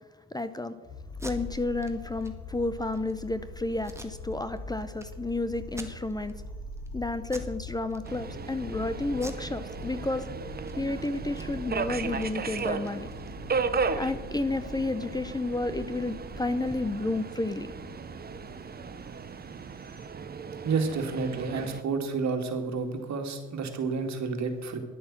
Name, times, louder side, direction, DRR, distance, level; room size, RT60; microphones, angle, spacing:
voice 1, 0.3-0.8 1.2-6.4 6.9-10.3 10.8-13.1 14.0-17.7, left 2 dB, 15° left, 12 dB, 0.7 m, -31 dB
sound 1, 0.8-20.1, left 2 dB, 60° left, 4.1 m, -43 dB
Packing tape duct tape, 1.1-1.3 1.8-1.9 2.2-2.3 2.7-3.1 3.8-4.6 5.0-5.1 5.6-6.3 6.7-6.9 7.3-7.6 7.9-8.5 9.1-10.3 10.6-10.7 11.0-13.6, right 2 dB, 10° right, 1.7 m, -47 dB
Subway metro underground, 8.0-21.8, right 5 dB, 30° right, 0.8 m, -36 dB
voice 2, 20.6-24.8, right 4 dB, 65° right, 5 dB, 2.2 m, -30 dB
11.0 x 8.9 x 7.5 m, 1.3 s
cardioid pair, 90°, 30 cm